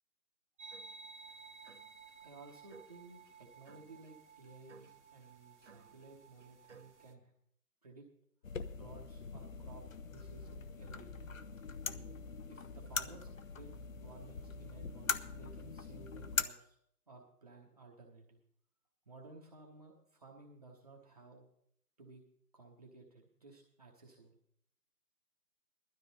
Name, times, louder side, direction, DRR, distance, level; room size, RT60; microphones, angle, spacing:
sound 1, 0.6-7.1, right 5 dB, 45° right, 1.1 m, -55 dB
voice 1, 2.2-7.3 7.8-8.1 8.7-11.1 11.9-12.2 12.5-16.8 17.1-18.4 19.1-21.4 22.0-22.2 22.5-24.4, right 3 dB, 25° right, -2 dB, 1.1 m, -56 dB
sound 2, 8.4-16.4, left 5 dB, 55° left, 0.7 m, -42 dB
17.0 x 12.5 x 4.1 m, 0.69 s
figure-of-eight pair, 160°, 47 cm